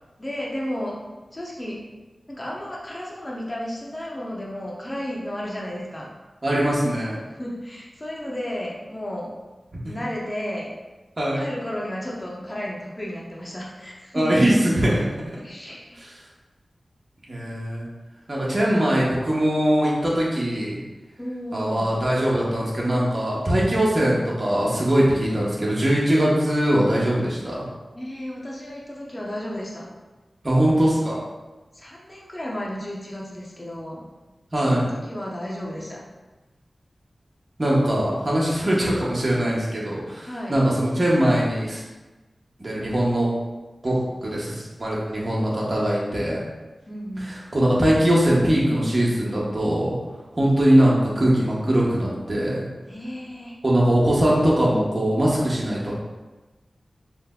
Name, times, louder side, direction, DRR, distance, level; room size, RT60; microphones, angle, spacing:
voice 1, 0.2-1.0 1.3-1.8 2.3-6.1 7.3-9.3 9.8-10.7 11.4-14.4 15.4-16.0 21.2-22.0 27.9-29.9 31.7-34.1 34.6-36.0 40.2-40.5 46.9-47.3 52.9-53.5, equal, 25° left, -4 dB, 0.8 m, -33 dB
voice 2, 6.4-7.2 9.8-9.9 11.2-11.5 14.1-15.1 16.0-16.2 17.3-17.8 18.3-20.8 21.5-27.6 30.4-31.2 34.5-34.9 37.6-41.8 42.6-43.3 43.8-46.4 47.2-49.9 50.3-52.7 53.6-55.9, right 1 dB, 40° right, -5 dB, 1.1 m, -21 dB
3.3 x 2.0 x 3.6 m, 1.2 s
cardioid pair, 45°, 0 cm